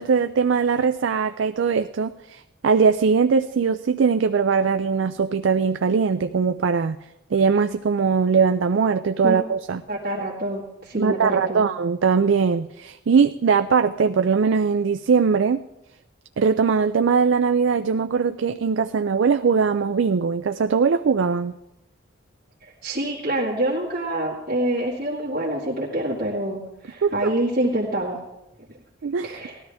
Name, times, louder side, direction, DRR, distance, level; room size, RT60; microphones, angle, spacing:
voice 1, 0.0-7.0 7.3-9.8 11.0-15.6 16.4-21.5 27.0-27.3 29.0-29.4, right 5 dB, 70° right, 10 dB, 0.4 m, -21 dB
voice 2, 9.9-11.7 22.6-28.2 28.6-28.7 29.2-29.6, right 1 dB, 45° right, -6 dB, 1.9 m, -26 dB
18.5 x 13.0 x 3.5 m, 0.88 s
head